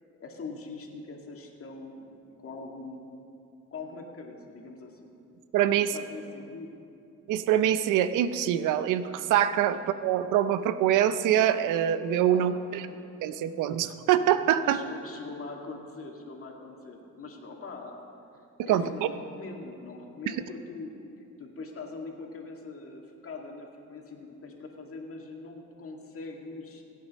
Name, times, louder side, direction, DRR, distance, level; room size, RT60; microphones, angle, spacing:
voice 1, 0.2-3.2 3.7-5.1 5.7-6.7 9.7-9.8 12.3-13.0 14.6-18.0 18.6-20.9 21.4-26.8, left 3 dB, 50° left, 1 dB, 2.1 m, -42 dB
voice 2, 5.5-5.9 7.3-12.9 13.2-14.8 18.7-19.1 20.3-20.4, right 10 dB, 90° right, 12 dB, 0.6 m, -24 dB
21.0 x 8.5 x 4.2 m, 2.6 s
cardioid pair, 90°, 30 cm